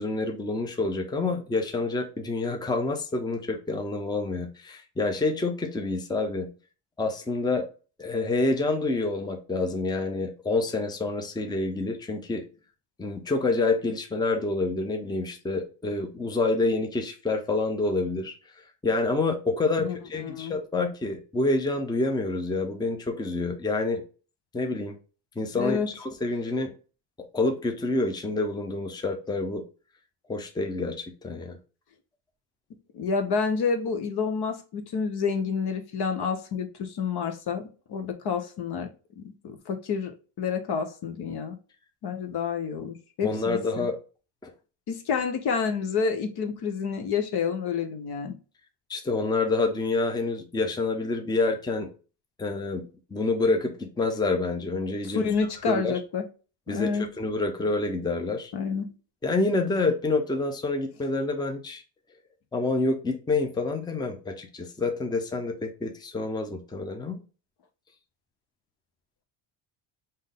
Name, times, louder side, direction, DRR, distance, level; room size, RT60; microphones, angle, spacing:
voice 1, 0.0-6.5 7.0-7.6 8.0-12.4 13.0-18.3 18.8-24.0 24.5-24.9 25.4-26.7 27.2-29.6 30.3-31.6 43.2-43.9 44.4-44.5 48.9-51.9 52.4-55.3 55.7-55.9 56.7-58.5 59.2-61.8 62.5-67.2, left 3 dB, 10° left, 0.7 m, -27 dB
voice 2, 19.8-20.5 25.6-25.9 32.9-38.9 39.2-40.1 40.4-41.6 42.0-43.8 44.9-48.3 55.0-56.2 56.7-57.1 58.5-58.9, left 5 dB, 55° left, 0.9 m, -29 dB
3.7 x 2.7 x 3.6 m
supercardioid pair, 90°, 48 cm